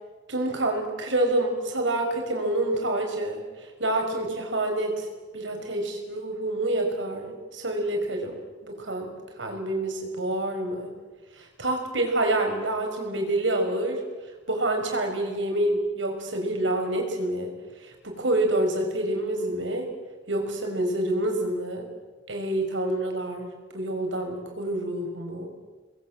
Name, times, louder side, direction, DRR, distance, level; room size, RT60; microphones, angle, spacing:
voice 1, 0.3-5.1 5.3-8.4 8.6-10.9 11.3-14.0 14.5-17.5 17.8-19.9 20.3-21.9 22.3-25.5, right 1 dB, 90° right, 2 dB, 6.0 m, -27 dB
29.5 x 21.5 x 7.6 m, 1.3 s
head